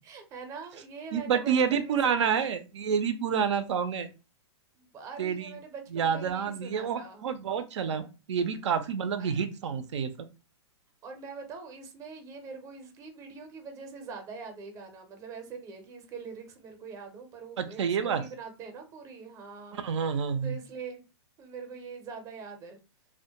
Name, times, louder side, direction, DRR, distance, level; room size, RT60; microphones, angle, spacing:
voice 1, 0.0-2.5 4.7-7.2 9.2-9.3 11.0-19.8 20.4-21.0 21.4-22.8, right 5 dB, 20° right, 5 dB, 0.5 m, -43 dB
voice 2, 1.1-4.1 5.2-5.5 5.9-10.1 17.6-18.2 19.7-20.6, right 7 dB, 80° right, 9 dB, 0.4 m, -28 dB
2.1 x 2.1 x 2.8 m, 0.30 s
hypercardioid pair, 140°, 15 cm